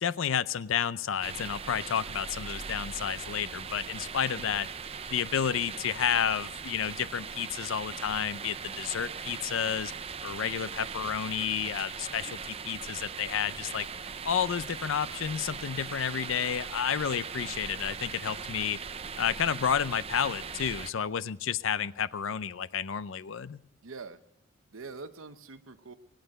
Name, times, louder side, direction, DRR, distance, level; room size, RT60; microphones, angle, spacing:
voice 1, 0.0-4.7 5.1-9.9 10.2-13.9 14.2-18.8 19.2-23.6, left 8 dB, 70° left, 17 dB, 0.5 m, -31 dB
sound 1, 1.2-20.9, right 6 dB, 30° right, 0.5 m, -40 dB
voice 2, 23.8-24.2 24.7-26.0, right 4 dB, 80° right, 10 dB, 0.9 m, -44 dB
18.5 x 9.1 x 6.5 m, 0.80 s
head